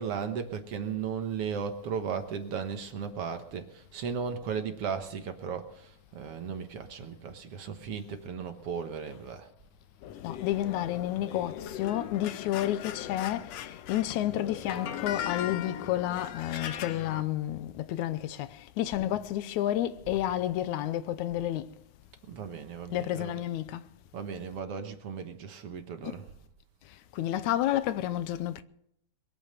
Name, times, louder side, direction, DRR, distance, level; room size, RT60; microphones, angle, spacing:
voice 1, 0.0-9.5 22.3-23.4 24.1-26.2, right 6 dB, 60° right, 1.9 m, -36 dB
sound 1, 10.0-17.2, left 10 dB, 70° left, 1.8 m, -39 dB
voice 2, 10.2-21.7 22.9-23.9 26.0-26.2 27.1-28.6, left 13 dB, 85° left, 2.1 m, -30 dB
22.0 x 8.8 x 6.6 m
omnidirectional pair, 3.4 m